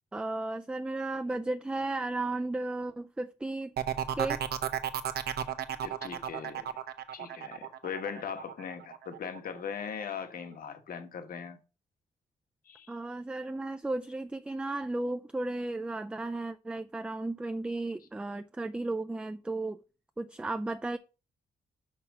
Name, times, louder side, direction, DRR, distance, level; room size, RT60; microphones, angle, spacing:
voice 1, 0.1-3.7 4.1-4.4 12.9-19.8 20.2-21.0, right 2 dB, 5° right, 0.3 m, -34 dB
sound 1, 3.8-9.4 9.8-10.2, right 10 dB, 75° right, 0.9 m, -34 dB
voice 2, 5.8-6.7 7.1-11.6 12.6-12.9, left 7 dB, 60° left, 1.2 m, -39 dB
5.9 x 5.7 x 6.1 m
cardioid pair, 130°, 17 cm